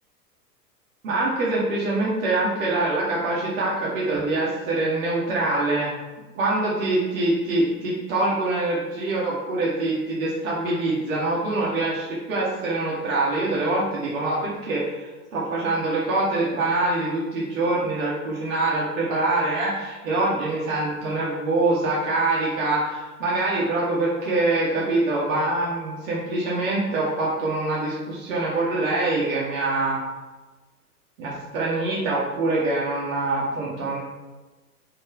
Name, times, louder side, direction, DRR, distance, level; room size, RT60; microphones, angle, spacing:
voice 1, 1.0-5.9 6.4-30.0 31.2-34.0, right 2 dB, 55° right, -6 dB, 2.3 m, -24 dB
6.6 x 6.2 x 4.8 m, 1.2 s
figure-of-eight pair, 100°, 47 cm